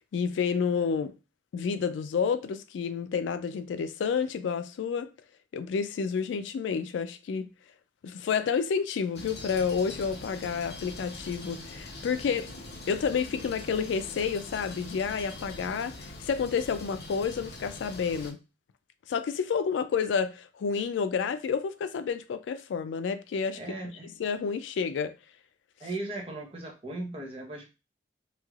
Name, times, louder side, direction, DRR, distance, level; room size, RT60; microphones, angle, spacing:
voice 1, 0.1-1.1 1.5-5.1 5.5-7.5 8.0-12.5 12.9-18.4 19.1-23.8 24.2-25.1, left 6 dB, 85° left, 0.3 m, -30 dB
sound 1, 9.1-18.3, left 2 dB, 55° left, 0.7 m, -43 dB
voice 2, 23.5-24.1 25.8-27.7, right 2 dB, 30° right, 0.8 m, -37 dB
3.1 x 2.7 x 2.3 m
head